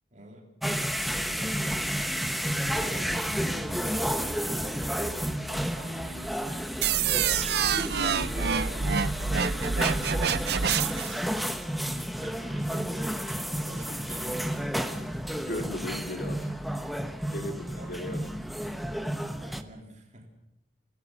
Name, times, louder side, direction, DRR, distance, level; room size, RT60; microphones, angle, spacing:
voice 1, 0.1-0.5 1.3-10.9 11.8-14.8 17.8-18.3 19.4-20.3, right 1 dB, 40° right, 1 dB, 3.5 m, -47 dB
sound 1, 0.6-19.6, equal, ahead, 1.1 m, -31 dB
sound 2, 6.8-11.2, right 6 dB, 60° right, 0.7 m, -27 dB
voice 2, 15.5-16.5 17.3-18.2, left 1 dB, 55° left, 5 dB, 2.8 m, -36 dB
28.5 x 16.5 x 6.5 m, 0.84 s
head